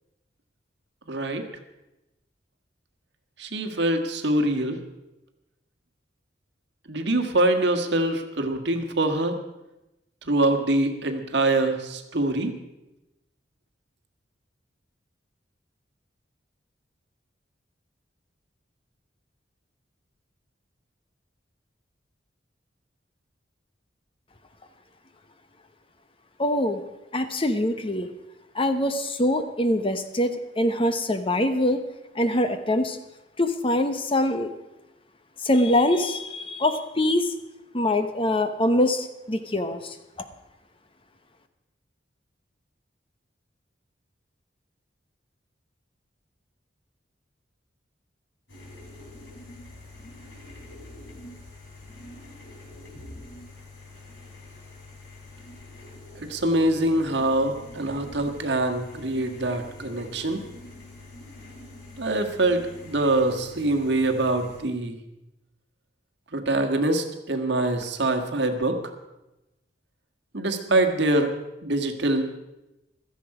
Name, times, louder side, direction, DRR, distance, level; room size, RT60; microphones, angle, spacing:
voice 1, 1.1-1.4 3.4-4.8 6.9-9.3 10.2-12.5 56.1-60.4 62.0-65.0 66.3-68.8 70.3-71.3 71.6-72.3, right 2 dB, 65° right, 5 dB, 1.6 m, -24 dB
voice 2, 26.4-26.8 27.1-28.1 28.5-31.8 32.1-33.0 33.4-34.5 35.4-37.3 37.7-40.3, left 1 dB, 30° left, 9 dB, 1.0 m, -24 dB
sound 1, 48.5-64.6, left 2 dB, 85° left, 5.1 m, -45 dB
16.5 x 13.5 x 4.9 m, 0.96 s
head